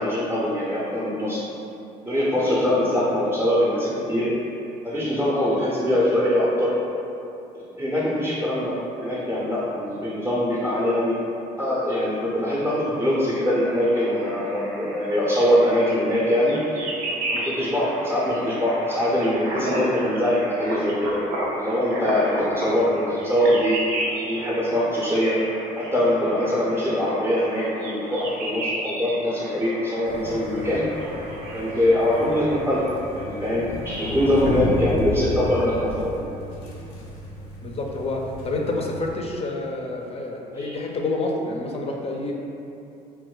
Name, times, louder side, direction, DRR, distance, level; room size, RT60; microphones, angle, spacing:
voice 1, 0.0-1.4 2.0-4.3 4.8-6.8 7.5-11.2 11.6-16.6 17.3-21.2 21.6-23.8 24.3-25.4 25.8-30.8 31.5-32.9 33.1-36.3 40.6-40.7, left 1 dB, 15° right, -8 dB, 0.6 m, -23 dB
sound 1, 13.6-32.8, right 1 dB, 85° right, 0.5 m, -33 dB
sound 2, 30.0-39.2, left 1 dB, 90° left, 0.5 m, -33 dB
voice 2, 37.6-42.3, left 2 dB, 35° left, 0 dB, 0.4 m, -28 dB
2.2 x 2.1 x 3.8 m, 2.8 s
hypercardioid pair, 60°, 19 cm